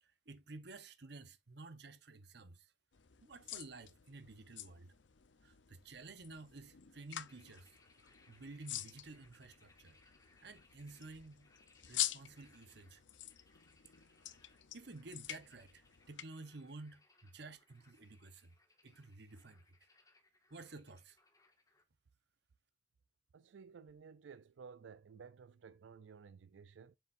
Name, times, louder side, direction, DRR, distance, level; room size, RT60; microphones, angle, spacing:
voice 1, 0.0-2.7 3.2-4.9 5.4-7.8 8.3-10.0 10.4-11.5 11.9-13.0 14.7-18.5 18.8-19.6 20.5-21.2, right 3 dB, 65° right, 1.0 m, -53 dB
sound 1, 2.9-16.2, left 13 dB, 80° left, 0.7 m, -47 dB
sound 2, 7.2-21.8, left 3 dB, 20° left, 1.7 m, -70 dB
voice 2, 23.3-27.0, right 6 dB, 80° right, 0.4 m, -55 dB
7.6 x 7.1 x 2.6 m
head